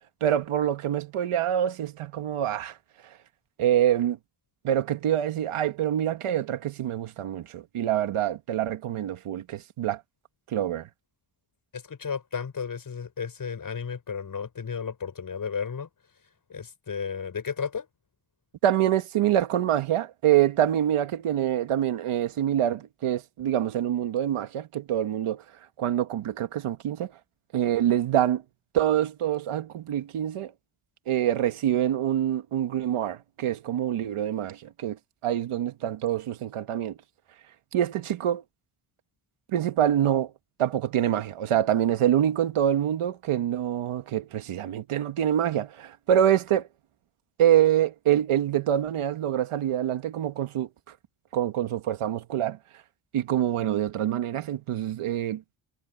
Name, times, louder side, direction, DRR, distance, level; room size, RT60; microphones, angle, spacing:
voice 1, 0.2-2.8 3.0-3.2 3.6-4.2 4.6-10.0 10.5-10.9 18.6-25.4 25.8-27.1 27.5-28.4 28.7-30.5 31.1-37.0 37.7-38.4 39.5-40.3 40.6-46.7 47.4-50.7 51.3-52.6 53.1-55.4, right 11 dB, 90° right, 1.8 m, -25 dB
voice 2, 11.7-15.9 16.5-17.9, left 6 dB, 40° left, 6.4 m, -33 dB
wide cardioid pair, 135°, 49 cm